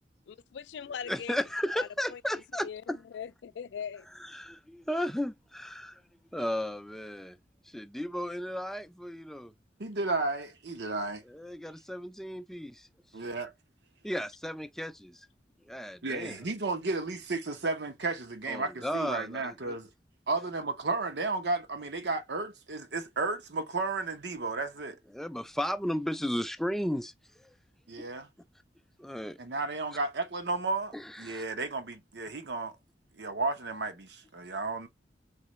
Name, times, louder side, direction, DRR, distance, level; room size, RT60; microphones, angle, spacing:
voice 1, 0.3-1.4 1.8-2.2 2.6-4.1, left 7 dB, 80° left, 0.3 m, -40 dB
voice 2, 1.1-3.0 4.2-6.0 6.3-7.4 7.7-9.5 11.3-12.9 14.0-15.3 15.7-16.4 18.5-19.8 25.1-27.1 27.4-27.5 29.0-29.4 30.9-31.4, equal, ahead, 0.3 m, -34 dB
voice 3, 9.8-11.2 13.1-13.5 16.0-19.9 20.3-25.0 27.9-28.3 29.4-32.7 33.2-34.9, right 3 dB, 75° right, 0.9 m, -33 dB
3.9 x 3.8 x 3.0 m
head